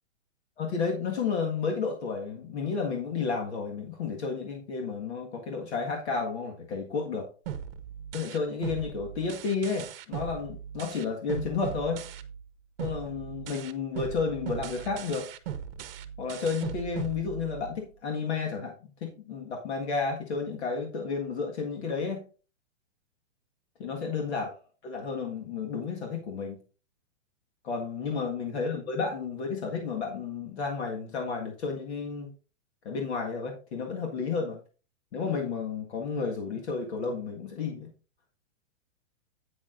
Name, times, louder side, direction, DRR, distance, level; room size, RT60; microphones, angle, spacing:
voice 1, 0.6-7.3 8.1-12.0 12.8-15.3 16.2-22.2 23.8-26.6 27.6-32.3 32.8-34.6 35.1-37.9, left 5 dB, 60° left, 1 dB, 1.8 m, -32 dB
sound 1, 7.5-12.5 12.8-17.8, right 9 dB, 50° right, 0.9 m, -39 dB
10.0 x 8.8 x 2.6 m, 0.37 s
hypercardioid pair, 175°, 38 cm